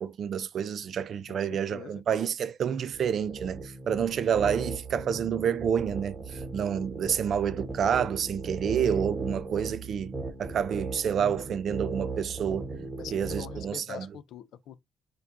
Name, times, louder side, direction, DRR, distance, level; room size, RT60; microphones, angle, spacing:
voice 1, 0.0-12.7 13.1-14.1, right 8 dB, 60° right, 0.3 m, -29 dB
voice 2, 1.3-2.0 13.0-14.8, left 9 dB, 80° left, 0.3 m, -43 dB
sound 1, 2.9-13.7, right 3 dB, 30° right, 0.9 m, -37 dB
4.6 x 2.3 x 2.5 m
cardioid pair, 90°, 0 cm